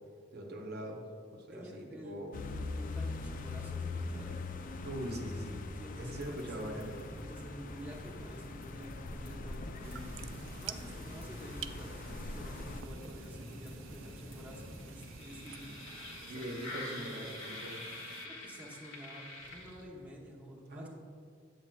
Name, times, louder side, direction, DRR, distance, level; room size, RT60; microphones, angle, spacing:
voice 1, 0.3-1.0 1.3-2.4 4.8-5.7 6.0-7.1 16.3-17.8 20.7-20.9, right 1 dB, 55° right, 1 dB, 0.7 m, -42 dB
voice 2, 1.5-4.4 5.7-6.8 7.1-10.3 10.6-15.7 16.2-17.2 18.2-20.9, equal, 10° right, -3 dB, 0.8 m, -50 dB
sound 1, 2.3-12.8, left 3 dB, 45° left, 0.4 m, -42 dB
sound 2, 6.2-20.1, left 1 dB, 90° left, 1.3 m, -47 dB
sound 3, 9.8-18.3, right 10 dB, 85° right, 0.3 m, -50 dB
8.1 x 7.4 x 2.2 m, 2.3 s
head